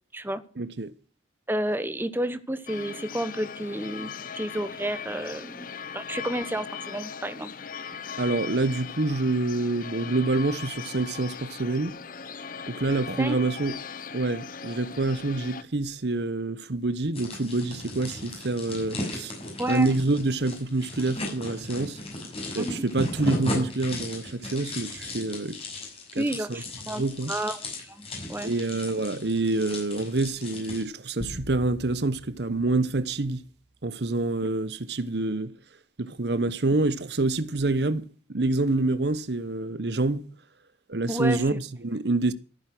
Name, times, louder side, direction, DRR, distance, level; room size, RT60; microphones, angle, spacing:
voice 1, 0.6-0.9 8.2-12.0 12.7-13.8 14.1-19.3 19.7-22.0 22.5-25.6 26.1-26.6 27.0-27.3 28.4-33.4 33.8-35.5 36.0-40.3 40.9-42.3, right 2 dB, 65° right, 1.0 m, -27 dB
voice 2, 1.5-5.7 5.9-7.5 13.2-13.4 19.6-19.9 22.6-22.8 26.2-27.0 27.3-27.6 27.9-28.5 41.1-41.6, right 1 dB, 10° right, 1.1 m, -31 dB
sound 1, 2.7-15.6, left 6 dB, 50° left, 0.9 m, -39 dB
sound 2, 17.1-30.8, left 1 dB, 35° left, 6.4 m, -36 dB
sound 3, 31.2-33.8, left 1 dB, 70° left, 1.5 m, -44 dB
14.5 x 9.4 x 6.1 m
head